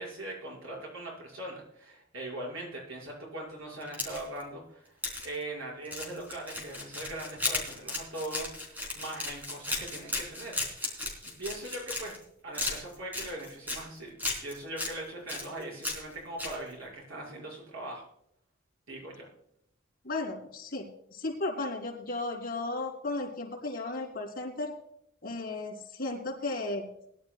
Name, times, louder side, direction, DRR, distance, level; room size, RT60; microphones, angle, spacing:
voice 1, 0.0-5.0 5.2-11.0 11.2-12.1 12.4-14.1 14.4-18.1 18.9-19.3, right 1 dB, 90° right, -2 dB, 5.8 m, -40 dB
sound 1, 3.8-4.4 5.0-5.3 5.9-12.2 12.5-13.8 14.2-14.9 15.3-16.1 16.4-16.5, left 2 dB, 10° right, 3.8 m, -35 dB
voice 2, 20.0-20.9 21.1-24.7 25.2-26.8, left 2 dB, 45° left, -2 dB, 3.4 m, -34 dB
21.0 x 11.5 x 2.4 m, 0.74 s
head